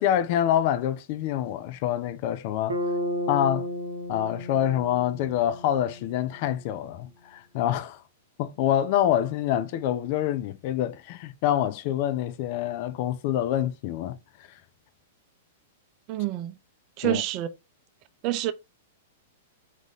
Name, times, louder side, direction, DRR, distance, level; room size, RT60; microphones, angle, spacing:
voice 1, 0.0-2.8 3.3-3.7 4.1-8.0 8.4-14.2 17.0-17.2, left 11 dB, 50° left, 0.6 m, -26 dB
Bass guitar, 2.7-6.8, equal, 90° right, 0.9 m, -33 dB
voice 2, 16.1-16.5 17.0-17.5 18.2-18.5, right 15 dB, 40° right, 0.5 m, -27 dB
4.1 x 3.1 x 4.0 m
hypercardioid pair, 110°, 0 cm